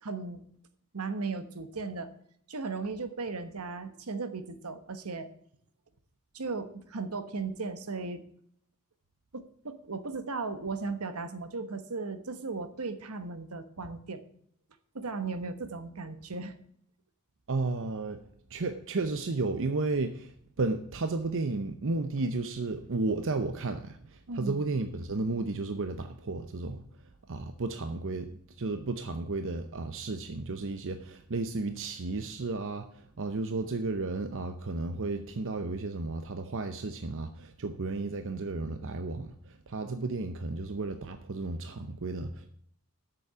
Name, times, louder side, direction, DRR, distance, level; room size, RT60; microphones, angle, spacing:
voice 1, 0.0-0.4 0.9-2.1 2.5-5.3 6.3-8.2 9.3-14.2 14.9-16.5 24.3-24.6, right 4 dB, 80° right, 10 dB, 1.1 m, -36 dB
voice 2, 17.5-18.2 18.5-20.3 20.6-26.8 27.3-28.3 28.6-42.5, right 3 dB, 60° right, 8 dB, 0.7 m, -33 dB
8.4 x 7.0 x 6.9 m, 0.65 s
head